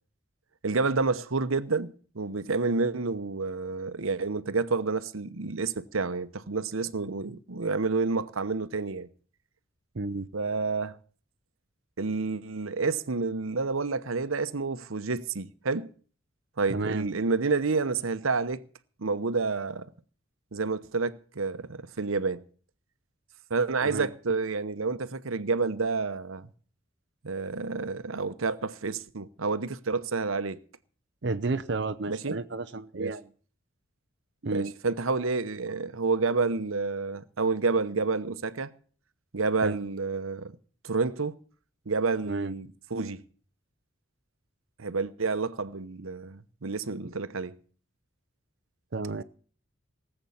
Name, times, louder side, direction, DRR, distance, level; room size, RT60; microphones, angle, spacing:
voice 1, 0.6-9.1 10.3-11.0 12.0-15.9 16.6-18.6 19.0-19.9 20.5-22.4 23.5-26.5 27.2-30.6 32.1-32.4 32.9-33.1 34.5-38.7 39.3-40.5 40.8-41.3 41.9-43.2 44.8-47.6, right 4 dB, 90° right, 1.0 m, -29 dB
voice 2, 9.9-10.3 16.7-17.1 23.8-24.1 31.2-33.2 34.4-34.7 39.6-39.8 42.3-42.5 48.9-49.2, right 3 dB, 55° right, 0.7 m, -31 dB
19.0 x 7.9 x 7.1 m
head